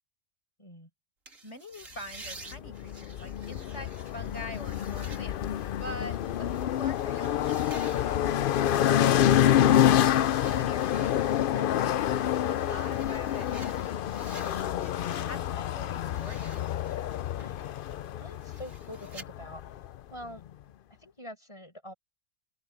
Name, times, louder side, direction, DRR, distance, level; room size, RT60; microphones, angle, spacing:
voice 1, 0.6-0.9 17.4-17.7 18.2-19.6 20.1-20.4 21.0-21.9, equal, 20° left, 7.7 m, -45 dB
sound 1, 1.3-15.5 15.8-19.3, right 3 dB, 70° right, 3.4 m, -51 dB
voice 2, 1.4-5.4 5.8-8.2 9.6-14.0 14.4-16.5, left 1 dB, 55° left, 7.6 m, -45 dB
sound 2, 2.5-20.0, left 11 dB, 70° left, 0.5 m, -27 dB
open air
omnidirectional pair, 1.4 m